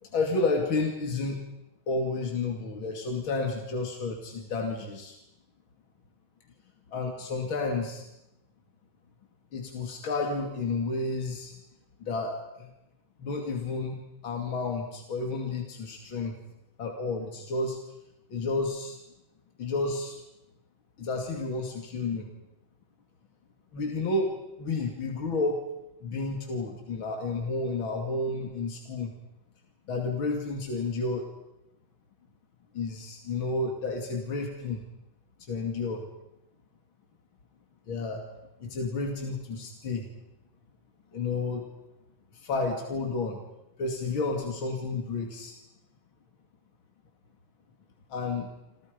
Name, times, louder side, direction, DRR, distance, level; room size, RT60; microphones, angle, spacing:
voice 1, 0.0-1.4 1.9-5.2 6.9-8.0 9.5-11.5 12.0-12.7 13.2-14.0 14.2-16.3 16.8-17.8 18.3-19.0 19.6-20.2 21.0-22.3 23.7-25.6 26.0-29.1 29.9-31.3 32.7-34.8 35.5-36.1 37.9-38.3 38.6-40.1 41.1-41.7 42.3-43.4 43.8-45.6 48.1-48.5, left 3 dB, 75° left, 2 dB, 3.3 m, -31 dB
28.5 x 27.5 x 5.3 m, 0.89 s
omnidirectional pair, 2.2 m